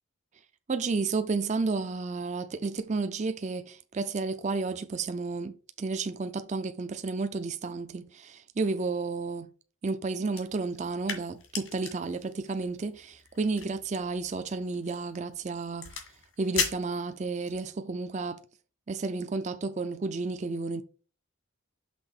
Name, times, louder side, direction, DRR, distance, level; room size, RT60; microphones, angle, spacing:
voice 1, 0.7-9.5 9.8-15.9 16.4-18.4 18.9-20.8, right 3 dB, 35° right, 0.4 m, -32 dB
sound 1, 10.3-17.6, left 6 dB, 70° left, 1.7 m, -39 dB
5.9 x 3.5 x 5.6 m
head